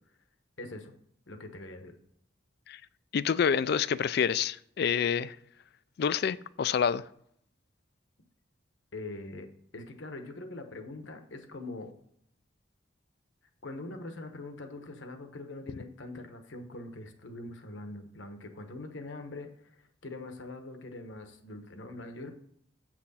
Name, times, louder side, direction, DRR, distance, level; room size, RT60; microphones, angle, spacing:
voice 1, 0.6-1.0 1.3-1.9 8.9-9.5 9.7-11.9 13.6-22.3, left 2 dB, 70° left, 1.1 m, -43 dB
voice 2, 3.1-5.4 6.0-7.0, left 7 dB, 55° left, 0.3 m, -27 dB
7.6 x 6.1 x 4.2 m
head